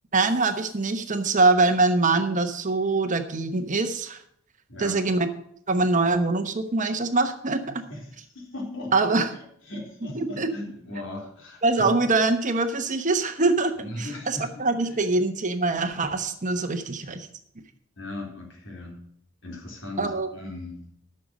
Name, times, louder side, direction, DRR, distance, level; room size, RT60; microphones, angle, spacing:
voice 1, 0.1-4.2 4.8-5.3 5.7-7.8 8.9-9.3 10.4-10.5 11.6-13.7 14.0-17.3 20.0-20.3, right 3 dB, 40° right, 8 dB, 1.0 m, -23 dB
voice 2, 4.7-5.0 7.9-11.9 13.8-15.0 18.0-19.0 19.4-20.8, left 2 dB, 65° left, 1 dB, 3.7 m, -38 dB
12.5 x 6.7 x 6.2 m, 0.67 s
head